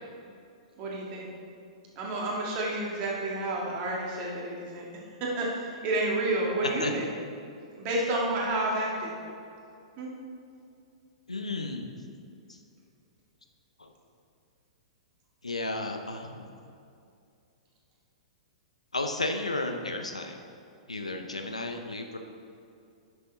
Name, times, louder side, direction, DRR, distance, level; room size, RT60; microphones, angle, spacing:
voice 1, 0.8-1.3 2.0-4.8 5.2-7.0 7.8-9.1 10.0-10.1, right 2 dB, 35° right, -3 dB, 2.1 m, -30 dB
voice 2, 11.3-11.9 12.5-12.6 13.8-13.9 15.4-16.5 18.9-20.4 20.9-22.2, left 2 dB, 80° left, 5 dB, 0.7 m, -33 dB
10.0 x 6.6 x 4.1 m, 2.5 s
figure-of-eight pair, 105°, 3 cm